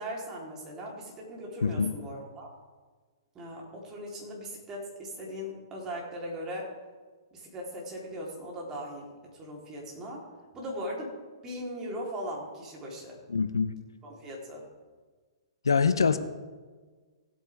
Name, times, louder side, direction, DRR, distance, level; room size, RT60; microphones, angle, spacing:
voice 1, 0.0-2.5 3.3-6.7 7.3-10.2 10.5-11.1 11.4-13.2 14.0-14.6, equal, 20° right, -3 dB, 3.7 m, -39 dB
voice 2, 1.6-1.9 13.3-13.7 15.6-16.2, left 5 dB, 80° left, 12 dB, 0.8 m, -24 dB
18.5 x 8.8 x 3.6 m, 1.4 s
figure-of-eight pair, 115°, 2 cm